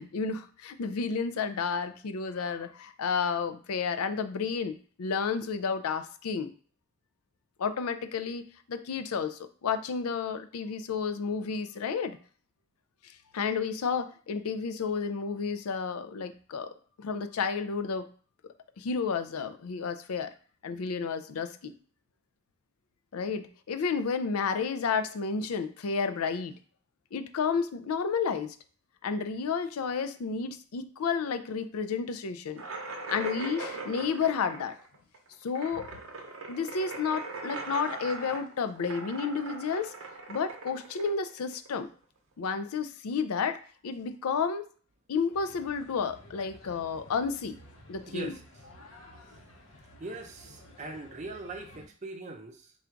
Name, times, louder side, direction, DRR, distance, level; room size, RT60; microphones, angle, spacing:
voice 1, 0.0-6.5 7.6-8.4 8.7-12.2 13.3-18.1 18.8-20.3 20.6-21.7 23.1-26.5 27.1-28.6 29.0-32.6 33.1-34.7 35.4-35.9 36.5-39.9 40.3-41.9 42.4-44.6 45.1-47.6 47.9-48.3, left 5 dB, 85° left, 11 dB, 0.4 m, -31 dB
sound 1, 32.6-41.9, right 3 dB, 70° right, 0.8 m, -40 dB
sound 2, 45.3-51.9, left 1 dB, 65° left, 0.8 m, -53 dB
voice 2, 48.1-48.4 50.0-52.7, right 2 dB, 35° right, 5 dB, 0.5 m, -41 dB
3.8 x 2.4 x 4.5 m, 0.43 s
head